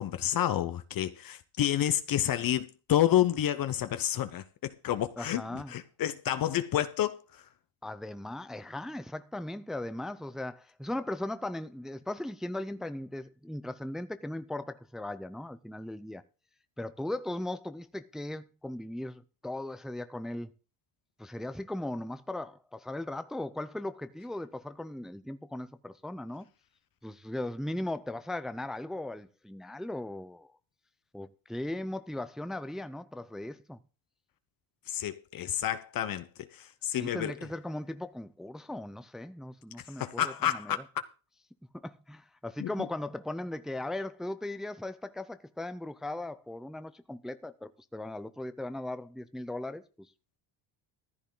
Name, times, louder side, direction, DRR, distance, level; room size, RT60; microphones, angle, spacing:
voice 1, 0.0-7.4 34.9-37.3 40.0-40.8 42.6-42.7, left 11 dB, 45° left, 0.9 m, -29 dB
voice 2, 5.2-5.7 7.8-16.2 16.8-20.5 21.2-26.5 27.0-30.5 31.1-33.8 37.0-40.8 41.8-50.1, left 1 dB, ahead, 0.5 m, -38 dB
14.5 x 10.0 x 3.9 m
cardioid pair, 125°, 47 cm